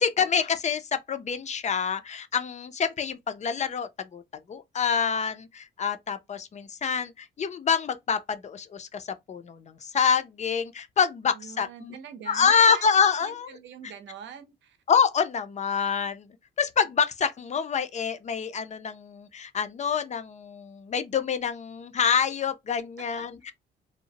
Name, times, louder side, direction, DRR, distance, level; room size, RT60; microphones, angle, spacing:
voice 1, 0.0-4.2 4.5-11.9 12.3-13.6 14.9-16.3 16.6-23.5, left 6 dB, 35° left, 0.4 m, -26 dB
voice 2, 11.3-12.9 13.2-14.8 23.2-23.3, right 7 dB, 65° right, 0.6 m, -43 dB
2.7 x 2.0 x 2.7 m
cardioid pair, 90°, 20 cm